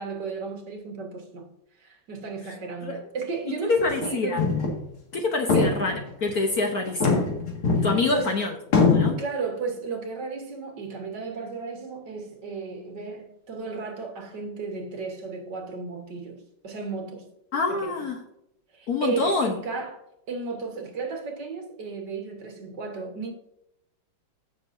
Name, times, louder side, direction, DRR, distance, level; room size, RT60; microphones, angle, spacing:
voice 1, 0.0-1.5 1.8-4.6 5.5-5.7 7.8-7.9 8.1-8.4 9.1-17.3 17.7-18.1 18.7-20.0 20.3-23.3, right 4 dB, 55° right, 2.0 m, -34 dB
voice 2, 3.6-4.4 5.1-7.3 7.8-9.2 17.5-18.2 18.9-19.6, left 3 dB, 55° left, 1.2 m, -26 dB
sound 1, 3.8-4.1 4.4-4.8 5.1-5.2 5.5-6.3 6.9-8.3 8.7-9.1, left 4 dB, 85° left, 2.8 m, -22 dB
15.5 x 6.7 x 2.6 m
omnidirectional pair, 2.3 m